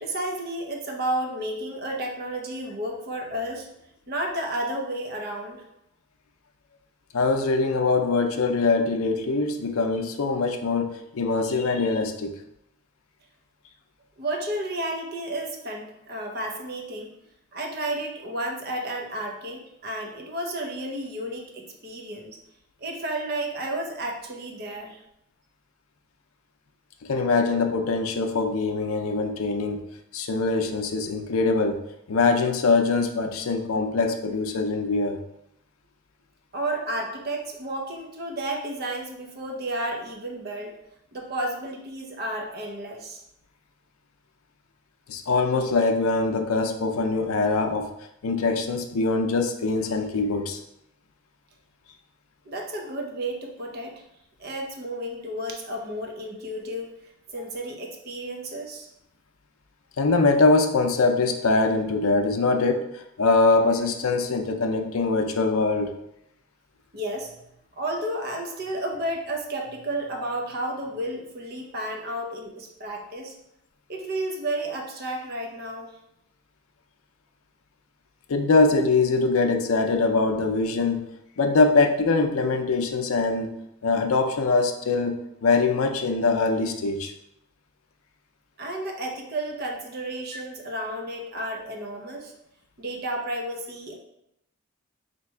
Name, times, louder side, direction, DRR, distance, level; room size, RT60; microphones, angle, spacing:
voice 1, 0.0-3.7 4.1-5.6 14.2-17.1 17.5-22.4 22.8-25.0 36.5-40.8 41.1-43.2 52.5-54.0 54.4-56.9 57.3-58.9 66.9-67.3 67.7-73.3 73.9-75.9 88.6-92.3 92.8-94.0, right 1 dB, 45° right, 1 dB, 0.7 m, -32 dB
voice 2, 7.1-12.4 27.1-29.8 30.1-31.8 32.1-35.2 45.1-47.9 48.2-50.6 60.0-65.9 78.3-81.0 81.4-83.5 83.8-87.1, left 3 dB, 80° left, 5 dB, 0.5 m, -23 dB
3.3 x 2.9 x 4.3 m, 0.80 s
head